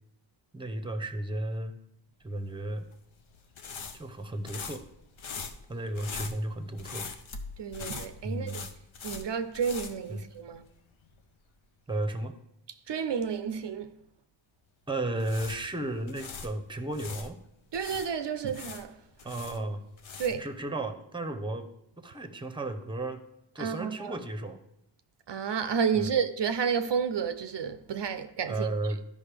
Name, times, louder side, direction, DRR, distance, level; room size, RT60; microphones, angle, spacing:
voice 1, 0.5-1.8 2.2-2.8 3.9-4.8 5.7-7.1 8.2-8.7 10.1-10.3 11.9-12.3 14.9-17.4 19.2-19.8 20.4-21.7 22.0-23.2 23.5-24.6 25.9-26.1 28.5-29.0, right 2 dB, 10° right, 0.7 m, -34 dB
sound 1, 2.7-10.8 11.0-11.2 15.0-17.3 17.7-20.5, left 5 dB, 85° left, 0.8 m, -42 dB
voice 2, 7.6-8.7 9.0-10.7 12.9-13.9 17.7-19.0 20.2-20.5 23.6-24.2 25.3-28.7, right 6 dB, 65° right, 0.5 m, -31 dB
13.0 x 5.3 x 3.4 m
wide cardioid pair, 95°, 46 cm